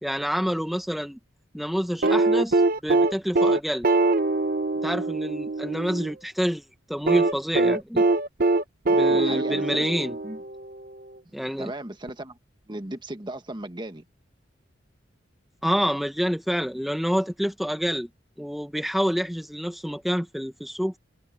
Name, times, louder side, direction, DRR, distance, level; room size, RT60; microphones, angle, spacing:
voice 1, 0.0-1.2 1.5-3.9 4.8-8.1 8.9-10.2 11.3-11.7 15.6-18.1 18.4-21.0, equal, ahead, 1.4 m, -28 dB
sound 1, 2.0-6.1 7.1-10.7 12.1-12.2, right 2 dB, 50° right, 1.1 m, -22 dB
voice 2, 9.1-9.9 10.2-10.4 11.6-12.4 12.7-14.0, right 1 dB, 25° right, 1.6 m, -36 dB
head